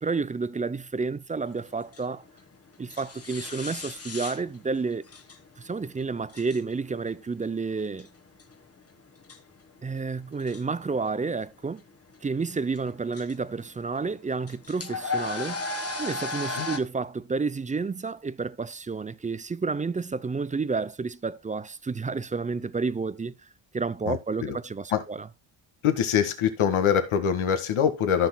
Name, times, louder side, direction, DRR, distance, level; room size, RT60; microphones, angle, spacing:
voice 1, 0.0-2.2 2.8-5.0 5.6-8.1 9.8-11.8 12.2-15.7 16.0-23.3 23.7-25.3, right 4 dB, 15° right, 0.4 m, -30 dB
sound 1, 1.5-16.8, left 3 dB, 30° left, 1.4 m, -37 dB
voice 2, 24.1-24.6 24.9-25.0 25.8-28.3, left 8 dB, 80° left, 1.8 m, -24 dB
14.5 x 6.2 x 2.2 m
cardioid pair, 95°, 48 cm